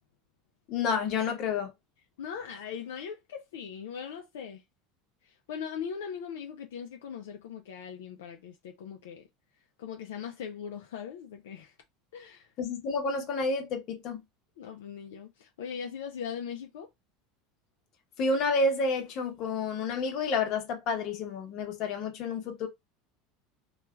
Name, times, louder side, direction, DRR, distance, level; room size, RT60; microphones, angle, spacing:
voice 1, 0.7-1.7 12.6-14.2 18.2-22.7, left 3 dB, 55° left, 1.0 m, -30 dB
voice 2, 2.2-4.6 5.2-9.2 9.8-11.7 12.1-12.5 14.6-16.9, left 7 dB, 80° left, 0.4 m, -40 dB
3.0 x 2.3 x 2.3 m
hypercardioid pair, 95°, 0 cm